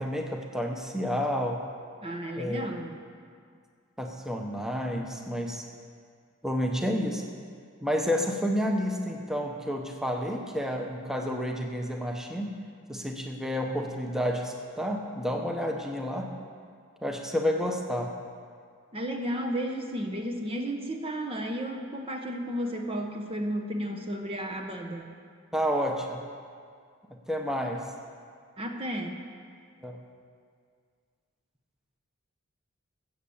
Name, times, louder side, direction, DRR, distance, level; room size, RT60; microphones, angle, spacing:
voice 1, 0.0-1.6 2.4-2.8 4.0-5.6 6.4-7.2 7.8-12.5 12.9-16.3 17.0-18.1 25.5-26.2 27.3-27.8 29.8-30.0, equal, ahead, 2 dB, 0.9 m, -30 dB
voice 2, 2.0-3.0 18.9-25.1 28.6-29.2, equal, 25° right, 3 dB, 0.9 m, -33 dB
15.5 x 7.6 x 7.1 m, 2.1 s
head